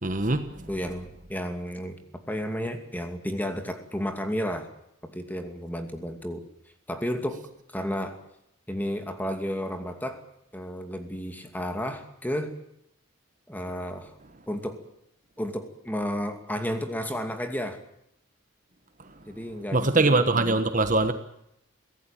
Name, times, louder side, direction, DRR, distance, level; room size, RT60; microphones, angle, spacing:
voice 1, 0.0-0.4 19.7-21.1, right 2 dB, 40° right, 9 dB, 1.3 m, -22 dB
voice 2, 0.7-2.0 2.3-4.7 5.0-6.4 6.9-7.4 7.7-8.2 8.7-10.2 10.5-12.5 13.5-14.1 14.5-14.8 15.4-17.8 19.3-20.3, equal, 10° left, 6 dB, 2.5 m, -32 dB
24.0 x 17.0 x 9.0 m, 0.77 s
head